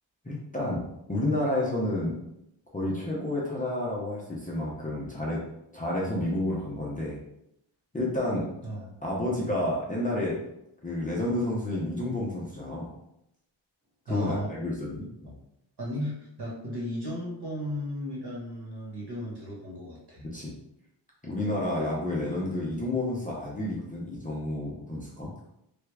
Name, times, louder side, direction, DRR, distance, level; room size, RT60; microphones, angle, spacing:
voice 1, 0.2-2.2 2.7-5.4 5.7-7.2 7.9-8.5 9.0-10.4 10.8-12.9 14.1-15.3 20.3-20.5 21.2-25.3, left 1 dB, 15° left, -5 dB, 0.5 m, -30 dB
voice 2, 14.1-14.5 15.8-20.2, equal, 55° right, -5 dB, 1.3 m, -35 dB
3.3 x 2.4 x 3.2 m, 0.81 s
wide cardioid pair, 165°, 47 cm